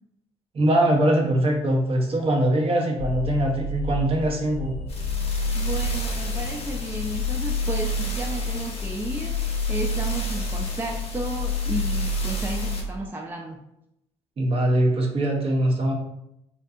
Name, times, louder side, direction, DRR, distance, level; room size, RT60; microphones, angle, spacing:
voice 1, 0.5-4.8 14.4-15.9, right 1 dB, 40° right, 0 dB, 0.7 m, -22 dB
sound 1, 3.0-12.8, left 2 dB, 40° left, 0.7 m, -28 dB
voice 2, 5.5-13.6, right 2 dB, 15° right, 0 dB, 0.3 m, -33 dB
2.6 x 2.2 x 2.4 m, 0.82 s
hypercardioid pair, 60°, 15 cm